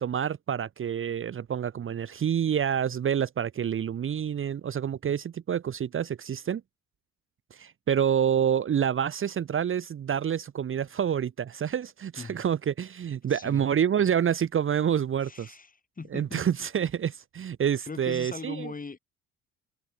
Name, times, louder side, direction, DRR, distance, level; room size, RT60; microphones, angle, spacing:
voice 1, 0.0-6.6 7.5-15.6 16.1-18.7, right 8 dB, 45° right, 0.9 m, -28 dB
voice 2, 13.3-13.6 15.2-16.5 17.9-19.0, left 4 dB, 30° left, 5.5 m, -40 dB
cardioid pair, 90°, 30 cm